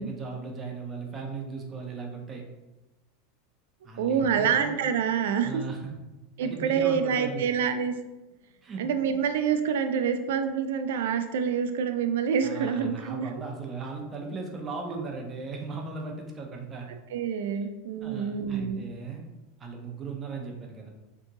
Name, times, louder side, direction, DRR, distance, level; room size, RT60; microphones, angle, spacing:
voice 1, 0.0-2.4 3.8-4.7 5.4-5.9 6.4-7.4 8.6-8.8 12.4-16.9 18.0-19.2 19.6-20.9, right 4 dB, 15° right, 1 dB, 0.4 m, -37 dB
voice 2, 4.0-5.5 6.4-7.9 8.8-13.3 14.9-15.0 17.1-18.8, right 7 dB, 80° right, 8 dB, 0.3 m, -27 dB
2.7 x 2.7 x 3.6 m, 1.0 s
supercardioid pair, 175°, 0 cm